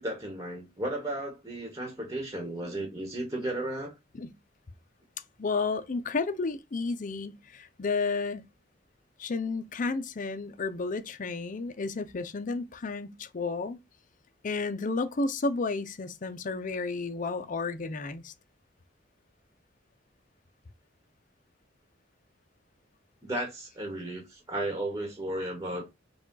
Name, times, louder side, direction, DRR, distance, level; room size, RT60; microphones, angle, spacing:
voice 1, 0.0-3.9 23.2-25.9, right 1 dB, 20° right, 1.3 m, -34 dB
voice 2, 5.4-8.4 9.2-13.8 14.4-18.3, left 3 dB, 45° left, 0.5 m, -32 dB
4.9 x 2.3 x 3.9 m
head